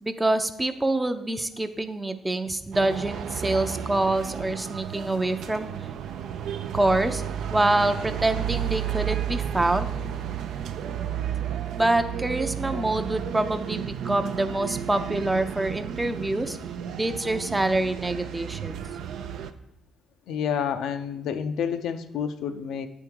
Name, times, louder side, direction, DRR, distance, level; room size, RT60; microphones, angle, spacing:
voice 1, 0.0-5.7 6.7-7.2 7.5-9.9 11.8-16.6 17.0-18.8, right 2 dB, 15° right, 9 dB, 0.5 m, -26 dB
sound 1, 2.7-19.5, right 9 dB, 75° right, 0.4 m, -32 dB
voice 2, 20.3-22.9, left 7 dB, 80° left, 9 dB, 0.4 m, -29 dB
8.5 x 3.6 x 4.5 m, 0.81 s
cardioid pair, 90°, 0 cm